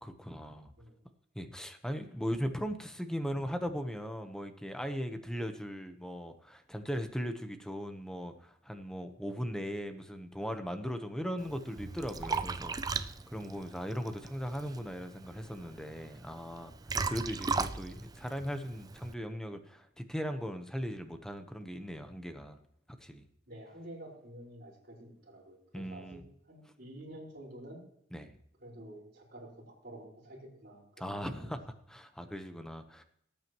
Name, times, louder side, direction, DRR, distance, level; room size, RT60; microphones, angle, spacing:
voice 1, 0.0-0.7 1.3-22.6 23.0-23.3 25.7-26.2 28.1-28.3 31.0-31.6 31.9-33.0, equal, 5° left, 7 dB, 1.0 m, -38 dB
Liquid, 11.4-19.1, right 4 dB, 20° right, 0.4 m, -38 dB
voice 2, 23.5-27.8 28.6-31.2, right 1 dB, 55° right, -4 dB, 5.0 m, -49 dB
18.5 x 8.9 x 3.1 m, 0.71 s
head